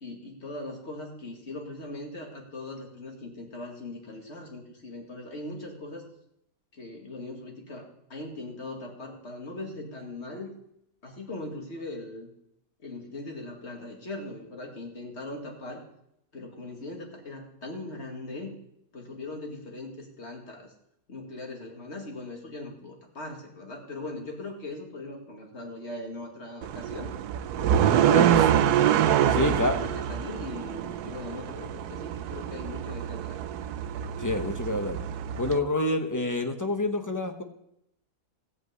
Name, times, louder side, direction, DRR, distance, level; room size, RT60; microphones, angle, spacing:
voice 1, 0.0-6.1 6.7-10.5 11.0-12.3 12.8-15.8 16.3-18.5 18.9-20.7 21.1-27.1 27.6-28.5 29.0-33.4, left 2 dB, 45° left, 1 dB, 2.4 m, -40 dB
sound 1, 26.6-35.6, right 10 dB, 85° right, 1.2 m, -26 dB
voice 2, 29.3-29.7 34.2-35.0 35.4-37.4, left 2 dB, 15° left, 5 dB, 0.9 m, -27 dB
15.0 x 5.5 x 8.1 m, 0.77 s
omnidirectional pair, 1.6 m